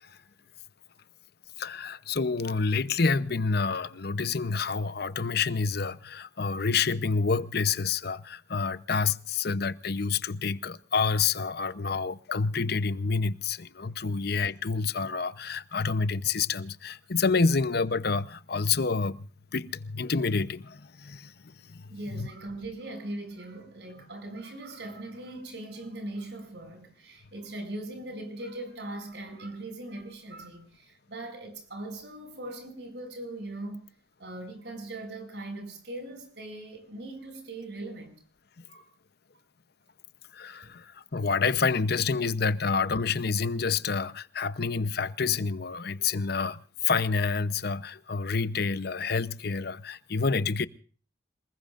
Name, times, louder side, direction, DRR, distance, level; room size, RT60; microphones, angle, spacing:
voice 1, 1.6-19.3 19.5-22.3 40.3-50.7, left 5 dB, 60° left, 0.8 m, -28 dB
voice 2, 21.9-33.9 34.2-38.2 38.7-38.9 40.4-40.8, right 1 dB, 70° right, 7.1 m, -40 dB
27.5 x 20.5 x 2.5 m
head